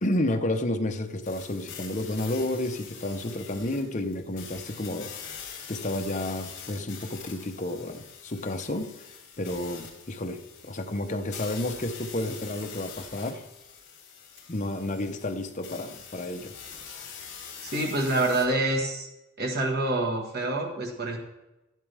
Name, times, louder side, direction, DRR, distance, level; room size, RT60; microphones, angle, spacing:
voice 1, 0.0-5.1 5.7-10.4 10.7-13.4 14.5-16.6, left 1 dB, 35° left, 6 dB, 0.9 m, -31 dB
Quicktime Alternative recharged, 1.2-18.5, left 7 dB, 55° left, 3.3 m, -44 dB
voice 2, 17.6-19.1 19.4-21.2, right 2 dB, 45° right, 1 dB, 1.6 m, -27 dB
13.0 x 11.0 x 3.4 m, 0.98 s
head